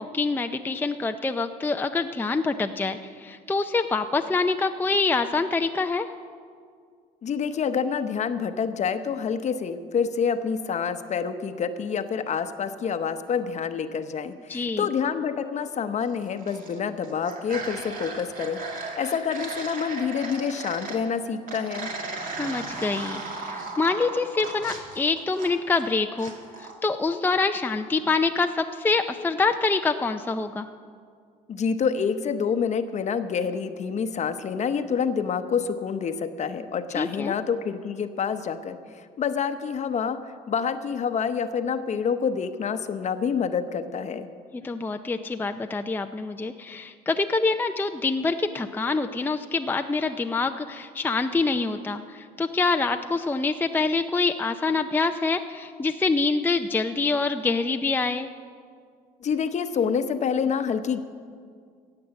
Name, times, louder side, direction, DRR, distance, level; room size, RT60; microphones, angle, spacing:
voice 1, 0.0-6.1 14.5-14.9 22.2-26.3 26.6-30.7 36.9-37.3 44.5-58.3, left 3 dB, 10° left, 6 dB, 0.5 m, -26 dB
voice 2, 7.2-21.9 31.5-38.8 39.2-40.2 40.5-44.3 59.2-61.0, left 6 dB, 45° left, 10 dB, 0.9 m, -27 dB
sound 1, 16.2-16.8 17.0-21.0 21.5-25.9 26.2-26.7, right 3 dB, 55° right, 2.5 m, -36 dB
16.5 x 7.8 x 7.1 m, 2.1 s
supercardioid pair, 80°, 17 cm